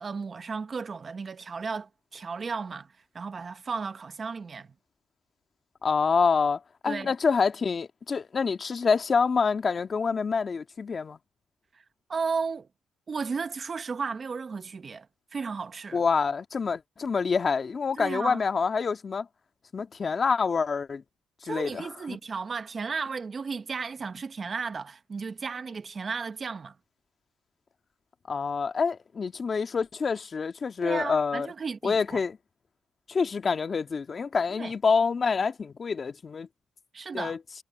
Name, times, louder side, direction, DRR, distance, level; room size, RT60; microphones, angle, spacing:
voice 1, 0.0-4.7 6.8-7.1 11.7-11.8 12.1-12.7 13.1-15.1 15.3-16.0 18.0-18.4 21.4-26.8 30.8-32.2 34.5-34.7 36.9-37.3, right 5 dB, 40° right, 1.2 m, -34 dB
voice 2, 5.8-11.2 15.9-19.3 19.7-21.0 21.4-22.2 28.3-31.5 31.8-32.4 33.1-36.5 37.1-37.4, left 5 dB, 40° left, 1.8 m, -27 dB
cardioid pair, 90°, 0 cm